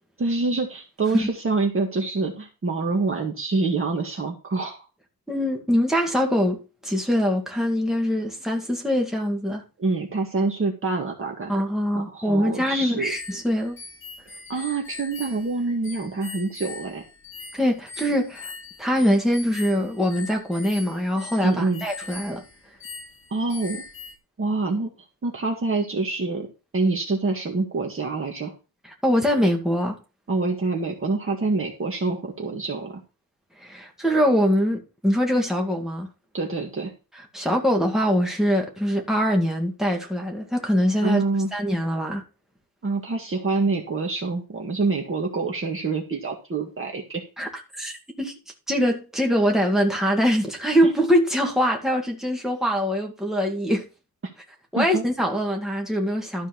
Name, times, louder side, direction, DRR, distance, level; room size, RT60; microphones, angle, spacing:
voice 1, 0.2-4.9 9.8-11.5 11.9-13.1 14.5-17.0 21.4-21.9 23.3-23.8 24.4-24.9 25.2-26.5 26.7-28.5 30.3-33.0 36.3-36.9 41.0-41.5 42.8-47.2 54.8-55.0, right 3 dB, 35° right, 1.8 m, -26 dB
voice 2, 5.3-9.6 11.5-13.8 17.5-18.5 18.8-22.4 28.8-30.0 33.6-36.1 37.3-41.2 41.5-42.2 47.4-47.5 47.8-48.3 48.7-53.9 54.7-56.5, equal, ahead, 2.1 m, -23 dB
sound 1, 13.1-24.2, left 4 dB, 35° left, 2.4 m, -41 dB
12.5 x 4.5 x 5.9 m
wide cardioid pair, 170°, 35 cm